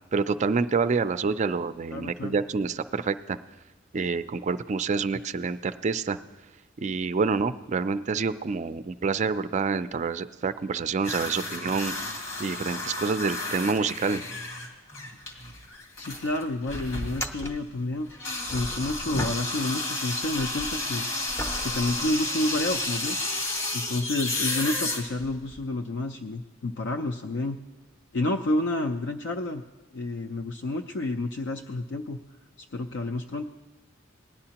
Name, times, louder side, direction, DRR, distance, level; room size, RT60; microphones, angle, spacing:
voice 1, 0.1-3.4 3.9-6.2 6.8-11.9 12.4-14.2, right 4 dB, 40° right, 13 dB, 0.4 m, -27 dB
voice 2, 1.9-2.4 16.0-18.1 18.5-21.1 21.6-23.2 23.7-27.6 28.1-29.6 29.9-32.2 32.7-33.4, left 2 dB, 65° left, 5 dB, 0.5 m, -29 dB
sound 1, 11.0-17.5 18.1-25.6, left 2 dB, 85° left, 2.1 m, -32 dB
sound 2, 15.7-15.8 16.1-16.2 17.0-19.9 20.2-22.9 23.6-23.7 27.8-27.9 29.3-29.4, equal, 15° left, 0.6 m, -38 dB
19.0 x 10.5 x 2.9 m, 1.2 s
head